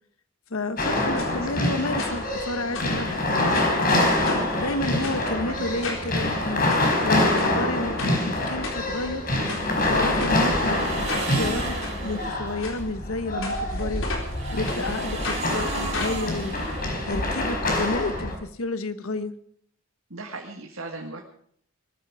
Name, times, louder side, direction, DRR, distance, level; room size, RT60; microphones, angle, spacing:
voice 1, 0.5-3.2 4.5-6.6 7.0-9.2 9.8-10.8 11.1-14.1 14.5-16.6 17.1-19.3, left 2 dB, 85° left, 11 dB, 1.3 m, -30 dB
sound 1, 0.8-18.3, left 1 dB, 45° left, 4.5 m, -26 dB
sound 2, 1.1-1.3 2.0-2.4 2.7-3.8 4.2-4.6 5.0-5.2 5.8-6.1 6.5-6.8 7.4-7.5 8.0-8.1 8.6-9.1 9.5-9.6 10.2-10.4 11.0-11.3 11.8-11.9 12.6-12.8 13.4-14.3 14.7-14.8 15.2-15.5 15.9-17.5 17.8-17.9 18.1-18.2, left 3 dB, 70° left, 4.0 m, -34 dB
sound 3, 9.4-12.5 14.0-17.3, right 3 dB, 35° right, 5.4 m, -36 dB
voice 2, 20.1-21.2, right 3 dB, 70° right, 2 dB, 1.9 m, -37 dB
20.5 x 14.0 x 4.9 m, 0.64 s
head